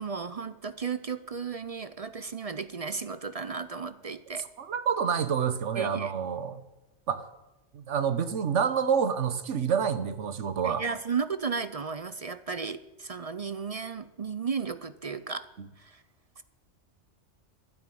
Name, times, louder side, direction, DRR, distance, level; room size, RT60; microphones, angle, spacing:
voice 1, 0.0-4.5 5.8-6.1 10.6-15.5 15.8-16.0 16.4-16.5, right 5 dB, 40° right, 13 dB, 0.5 m, -34 dB
voice 2, 4.6-6.6 7.1-7.2 7.7-10.8 15.6-15.7, right 7 dB, 80° right, 12 dB, 1.4 m, -28 dB
13.0 x 10.5 x 9.2 m, 1.1 s
omnidirectional pair, 1.2 m